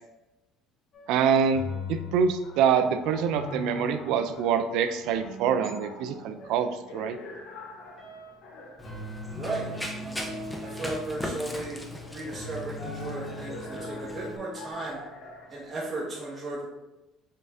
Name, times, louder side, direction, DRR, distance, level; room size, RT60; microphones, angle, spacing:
sound 1, 0.9-6.9 8.0-8.3 8.8-11.8 12.3-14.7, left 1 dB, 40° left, 1.3 m, -41 dB
voice 1, 1.1-1.6 1.9-7.2, right 7 dB, 70° right, 9 dB, 0.4 m, -25 dB
sound 2, 2.4-15.7, left 2 dB, 70° left, 0.9 m, -47 dB
Run, 8.8-14.4, left 1 dB, 5° left, 0.5 m, -39 dB
voice 2, 9.3-9.7 10.0-11.8 12.1-15.0 15.5-16.6, right 2 dB, 25° right, -6 dB, 0.9 m, -35 dB
5.3 x 2.7 x 3.4 m, 0.98 s
cardioid pair, 145°, 0 cm